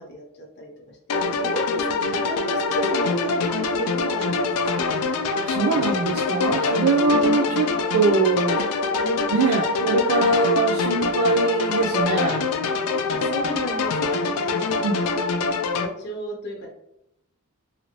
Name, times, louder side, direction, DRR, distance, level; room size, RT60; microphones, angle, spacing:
voice 1, 0.0-5.0 7.1-7.4 9.0-9.3 10.4-10.6 13.0-16.7, equal, 50° left, -1 dB, 0.8 m, -35 dB
sound 1, 1.1-15.9, left 4 dB, 75° left, 0.3 m, -24 dB
voice 2, 5.4-7.7 7.9-8.6 9.3-12.4 14.8-15.0, right 3 dB, 70° right, 1 dB, 0.4 m, -22 dB
2.7 x 2.7 x 2.9 m, 0.80 s
head